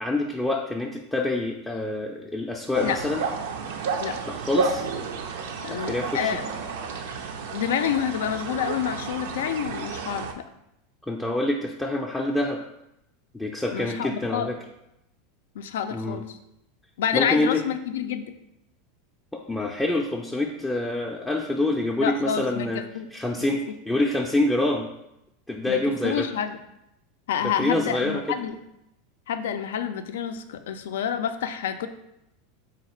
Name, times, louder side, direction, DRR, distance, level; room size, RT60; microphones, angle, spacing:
voice 1, 0.0-3.2 4.3-4.8 5.7-6.4 11.1-12.6 13.3-14.6 15.9-16.2 17.1-17.6 19.3-22.8 23.1-24.9 25.5-26.3 27.4-28.2, left 2 dB, 10° left, -1 dB, 0.4 m, -26 dB
sound 1, 2.7-10.3, right 5 dB, 75° right, 0.4 m, -31 dB
voice 2, 5.6-6.4 7.5-10.4 13.7-14.5 15.6-16.4 17.0-18.3 22.0-22.7 22.9-23.1 25.7-26.6 27.3-28.6 29.3-31.9, left 9 dB, 80° left, 9 dB, 0.3 m, -28 dB
3.9 x 2.4 x 4.2 m, 0.85 s
hypercardioid pair, 110°, 0 cm